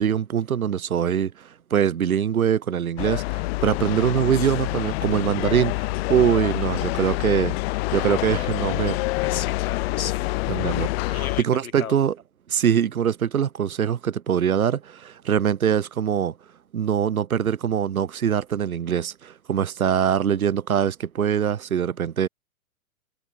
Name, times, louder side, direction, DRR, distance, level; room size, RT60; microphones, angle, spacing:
voice 1, 0.0-7.6 7.9-9.0 10.5-12.1 12.5-16.3 16.7-22.3, right 8 dB, 75° right, 2.3 m, -23 dB
sound 1, 3.0-11.4, left 23 dB, 45° left, 3.9 m, -26 dB
voice 2, 9.2-12.0, left 8 dB, 70° left, 5.5 m, -36 dB
hypercardioid pair, 115°, 43 cm